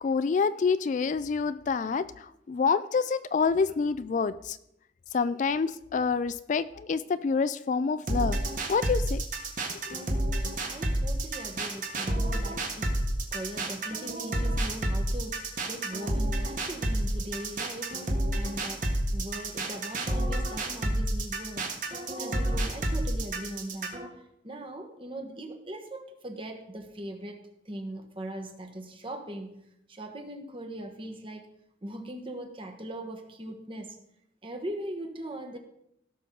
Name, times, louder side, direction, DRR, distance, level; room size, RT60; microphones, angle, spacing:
voice 1, 0.0-4.6 5.1-8.4 8.7-9.2 9.7-10.0, left 5 dB, 45° left, 14 dB, 0.3 m, -27 dB
sound 1, 8.1-24.1, right 1 dB, 45° right, 1.5 m, -29 dB
voice 2, 10.6-13.0 13.3-21.8 22.2-24.0 24.4-29.6 29.9-31.5 31.8-34.0 34.4-35.6, right 1 dB, 30° right, 5 dB, 1.3 m, -40 dB
17.0 x 6.1 x 3.8 m, 0.78 s
head